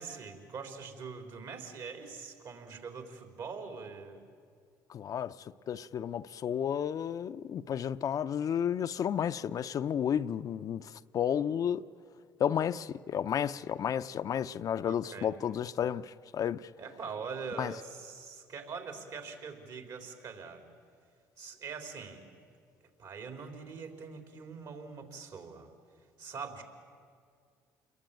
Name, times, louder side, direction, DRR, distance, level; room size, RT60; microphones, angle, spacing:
voice 1, 0.0-4.2 14.8-15.3 16.8-20.7 21.4-22.3 23.0-25.7 26.2-26.6, right 5 dB, 60° right, 4.1 m, -43 dB
voice 2, 4.9-11.8 12.4-16.7 17.6-17.7, left 9 dB, 50° left, 0.6 m, -32 dB
28.5 x 22.0 x 9.0 m
supercardioid pair, 70°, 8 cm